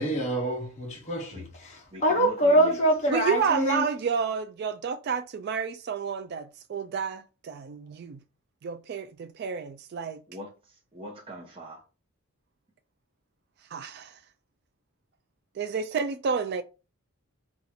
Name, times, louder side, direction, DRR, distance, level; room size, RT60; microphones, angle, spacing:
voice 1, 0.0-1.3 2.0-3.9, right 1 dB, 30° left, 0.8 m, -24 dB
voice 2, 1.9-2.8 10.3-11.8, equal, 25° right, 0.8 m, -43 dB
voice 3, 3.1-8.2 8.6-10.2 13.7-14.2 15.6-16.6, right 6 dB, 50° right, 0.3 m, -30 dB
4.0 x 2.4 x 4.2 m
head